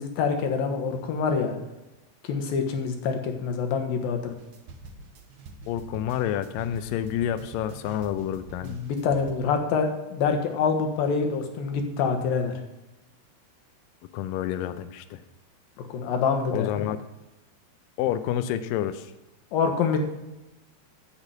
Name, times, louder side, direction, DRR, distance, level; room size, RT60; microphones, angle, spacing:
voice 1, 0.0-1.6 2.2-4.3 8.6-12.5 15.8-16.8 19.5-20.0, left 5 dB, 70° left, 5 dB, 2.8 m, -26 dB
sound 1, 4.3-9.3, right 4 dB, 65° right, 2.0 m, -45 dB
voice 2, 5.7-8.8 14.1-15.2 16.5-17.0 18.0-19.1, left 11 dB, 85° left, 10 dB, 1.9 m, -29 dB
10.0 x 7.0 x 8.0 m, 1.0 s
omnidirectional pair, 4.6 m